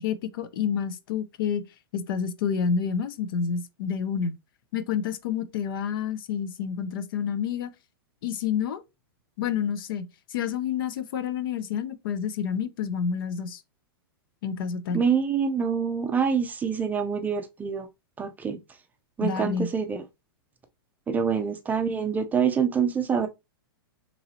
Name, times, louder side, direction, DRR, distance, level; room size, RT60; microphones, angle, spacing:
voice 1, 0.0-1.6 1.9-4.4 4.7-7.7 8.2-8.8 9.4-10.0 10.3-13.6 14.4-15.0 19.2-19.7, left 7 dB, 60° left, 0.6 m, -29 dB
voice 2, 14.9-17.9 18.2-18.6 19.2-20.0 21.1-23.3, right 6 dB, 15° right, 0.5 m, -26 dB
3.9 x 3.0 x 2.7 m
hypercardioid pair, 135°, 13 cm